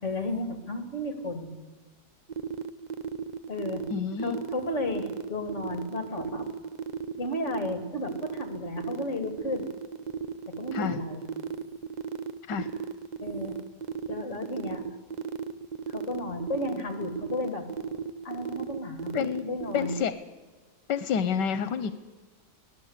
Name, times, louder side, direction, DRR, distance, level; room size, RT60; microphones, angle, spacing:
voice 1, 0.0-1.5 3.5-3.8 4.2-6.5 7.2-9.7 10.5-11.2 13.2-13.6 14.1-14.9 15.9-17.7 18.2-20.0, left 2 dB, 45° left, 7 dB, 3.0 m, -33 dB
sound 1, 2.3-20.0, right 7 dB, 75° right, 0.4 m, -35 dB
voice 2, 3.9-4.4 10.7-11.0 12.5-12.7 19.1-19.4 19.7-20.1 20.9-21.9, left 7 dB, 85° left, 12 dB, 1.5 m, -28 dB
23.0 x 17.0 x 8.2 m, 1.3 s
omnidirectional pair, 1.8 m